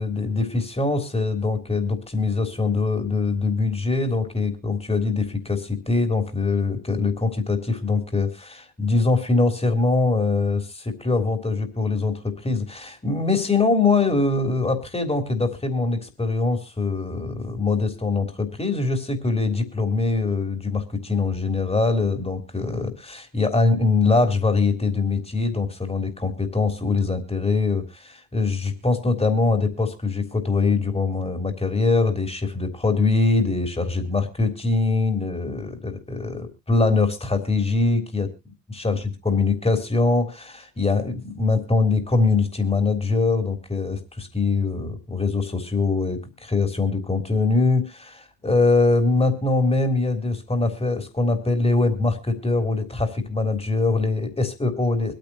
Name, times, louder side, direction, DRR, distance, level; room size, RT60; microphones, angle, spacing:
voice 1, 0.0-38.3 38.7-55.1, left 3 dB, 15° left, 6 dB, 3.4 m, -23 dB
24.5 x 9.2 x 2.8 m, 0.26 s
hypercardioid pair, 65°, 46 cm